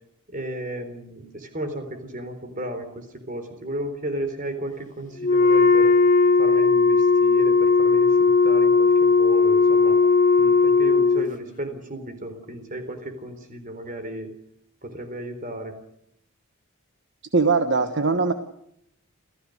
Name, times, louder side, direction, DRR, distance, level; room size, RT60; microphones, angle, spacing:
voice 1, 0.3-6.0 6.4-10.0 10.4-14.3 14.8-15.7, right 1 dB, 35° right, 8 dB, 3.9 m, -34 dB
Wind instrument woodwind instrument, 5.2-11.3, left 4 dB, 35° left, 1.0 m, -17 dB
voice 2, 17.3-18.3, right 4 dB, 55° right, 8 dB, 1.3 m, -20 dB
28.0 x 15.5 x 6.6 m, 0.74 s
head